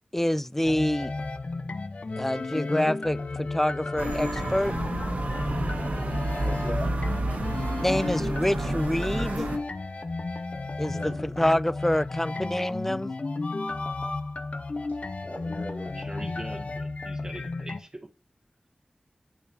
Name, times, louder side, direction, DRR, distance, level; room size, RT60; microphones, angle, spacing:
voice 1, 0.1-1.1 2.2-4.7 7.8-9.5 10.8-13.1, left 1 dB, 10° left, 0.3 m, -26 dB
sound 1, 0.6-17.8, left 3 dB, 55° left, 0.5 m, -33 dB
sound 2, 4.0-9.6, right 2 dB, 90° right, 1.2 m, -30 dB
voice 2, 6.4-6.9 10.9-11.2 14.9-16.1, left 1 dB, 90° left, 3.5 m, -38 dB
voice 3, 11.1-11.6 15.8-18.1, right 1 dB, 25° right, 1.2 m, -43 dB
8.1 x 6.9 x 2.8 m
wide cardioid pair, 60°, 3 cm